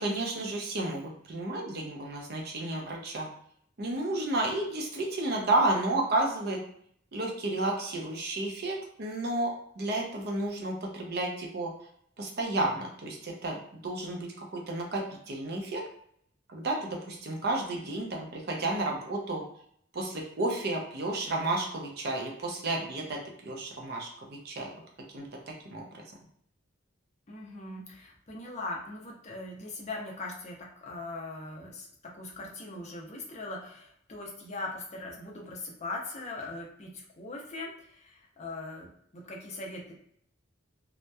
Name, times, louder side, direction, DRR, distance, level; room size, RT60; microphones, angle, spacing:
voice 1, 0.0-3.3 3.8-6.6 7.1-11.7 12.2-15.8 16.5-19.4 19.9-24.7 25.1-26.0, right 2 dB, 55° right, 1 dB, 0.5 m, -32 dB
voice 2, 17.7-18.0 27.3-38.9 39.1-39.9, left 2 dB, 35° left, -1 dB, 0.5 m, -40 dB
2.8 x 2.0 x 2.2 m, 0.67 s
head